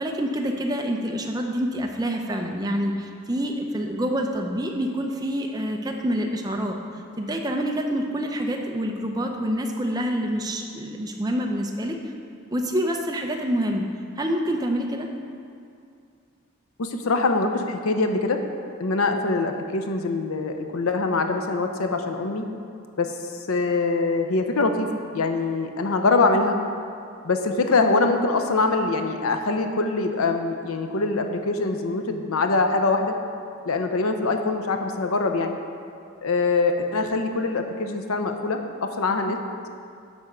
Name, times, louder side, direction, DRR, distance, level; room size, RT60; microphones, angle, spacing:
voice 1, 0.0-6.8 7.2-12.0 12.5-15.1, equal, 20° right, 2 dB, 0.6 m, -27 dB
voice 2, 16.8-18.4 18.8-22.4 23.0-23.1 23.5-26.6 27.2-33.1 33.7-35.6 36.2-39.4, left 3 dB, 80° left, 6 dB, 0.7 m, -23 dB
10.5 x 3.6 x 6.6 m, 2.4 s
head